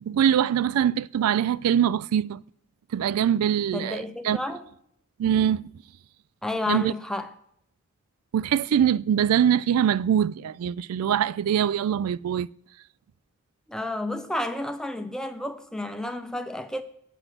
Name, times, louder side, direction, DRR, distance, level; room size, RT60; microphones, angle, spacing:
voice 1, 0.0-2.4 2.9-4.4 5.2-5.7 6.7-6.9 8.3-12.5, right 9 dB, 90° right, 0.3 m, -23 dB
voice 2, 3.7-4.6 6.4-7.3 13.7-16.8, left 1 dB, 5° left, 0.6 m, -31 dB
9.1 x 7.8 x 6.0 m
head